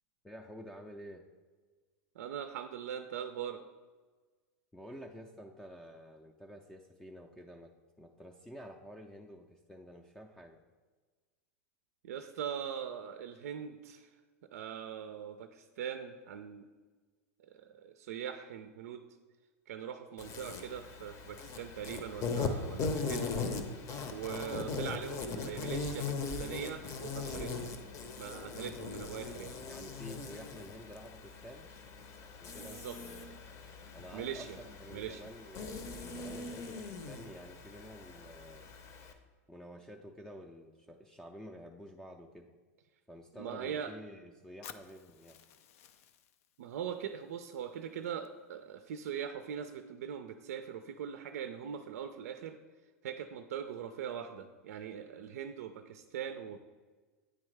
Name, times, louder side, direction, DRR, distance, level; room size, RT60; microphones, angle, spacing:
voice 1, 0.2-1.2 4.7-7.7 8.0-10.6 29.7-31.7 32.4-33.4 33.9-38.7 39.5-42.5 43.1-45.4, equal, 5° left, 2 dB, 0.4 m, -50 dB
voice 2, 2.2-3.6 12.0-14.2 14.5-16.7 17.4-19.0 19.7-23.3 24.1-27.8 28.2-29.6 32.6-33.0 34.1-34.6 34.9-35.2 43.4-43.9 46.6-52.6 53.0-56.6, right 8 dB, 75° right, 8 dB, 0.4 m, -41 dB
Insect, 20.2-39.1, left 4 dB, 40° left, 0.7 m, -40 dB
Fire, 44.6-48.6, left 9 dB, 70° left, 0.4 m, -56 dB
9.1 x 3.5 x 3.2 m, 1.4 s
hypercardioid pair, 100°, 8 cm